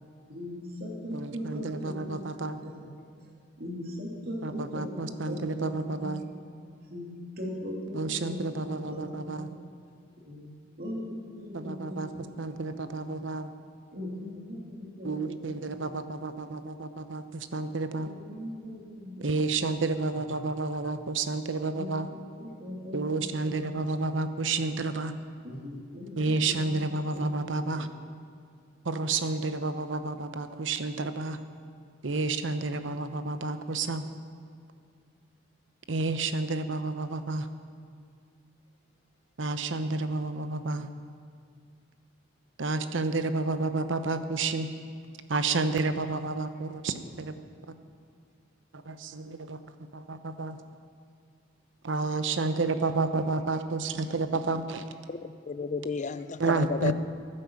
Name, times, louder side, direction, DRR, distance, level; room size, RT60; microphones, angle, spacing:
voice 1, 0.3-2.9 3.2-3.3 3.6-6.2 6.9-9.5 10.2-10.5 10.8-13.1 13.9-15.9 18.0-19.6 20.1-20.4 20.7-20.9 21.7-24.8 25.4-27.9, left 1 dB, 55° right, -2 dB, 2.9 m, -40 dB
voice 2, 1.1-2.6 4.4-6.2 7.9-9.5 11.5-12.1 12.4-13.5 15.0-18.1 19.2-22.1 22.9-25.1 26.2-27.9 28.9-31.4 32.0-34.0 35.9-37.5 39.4-40.9 42.6-44.7 45.3-47.3 48.9-49.6 49.9-50.6 51.8-54.8 56.4-56.9, right 3 dB, 75° right, 10 dB, 0.8 m, -30 dB
voice 3, 55.1-56.9, left 4 dB, 40° left, 13 dB, 0.5 m, -33 dB
15.0 x 9.8 x 7.1 m, 2.3 s
head